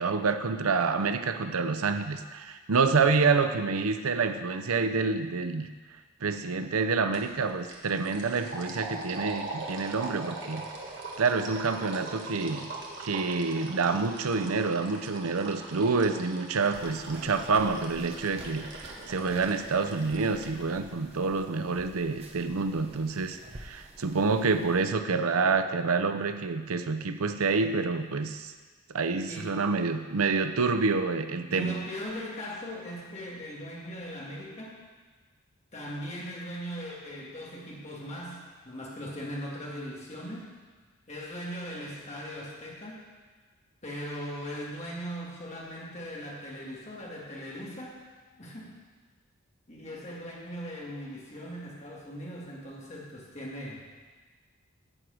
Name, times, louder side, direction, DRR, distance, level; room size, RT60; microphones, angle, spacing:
voice 1, 0.0-5.7 6.2-10.7 11.2-12.7 13.0-28.5 28.9-31.7, right 4 dB, 85° right, 9 dB, 0.6 m, -27 dB
voice 2, 3.0-3.3 17.2-17.4 29.1-29.7 31.5-34.8 35.7-40.5 41.1-43.0 43.8-48.0 48.4-48.8 49.7-53.8, equal, 30° left, -4 dB, 2.0 m, -39 dB
sound 1, 7.1-7.4 7.6-20.5, right 2 dB, 55° right, 1.5 m, -41 dB
sound 2, 16.7-24.8, right 1 dB, 30° right, 1.0 m, -49 dB
11.0 x 4.8 x 7.8 m, 1.4 s
head